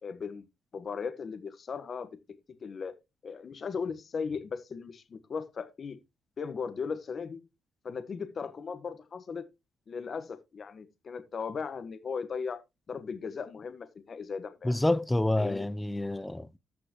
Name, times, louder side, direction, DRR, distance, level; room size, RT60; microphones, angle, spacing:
voice 1, 0.0-0.4 0.7-2.1 2.6-2.9 3.2-6.0 6.4-7.4 7.8-9.4 9.9-12.6 12.9-14.8 15.4-15.7, left 5 dB, 45° left, 1.4 m, -37 dB
voice 2, 14.6-16.6, left 1 dB, 10° left, 0.5 m, -28 dB
14.5 x 6.0 x 3.0 m
cardioid pair, 90°, 0 cm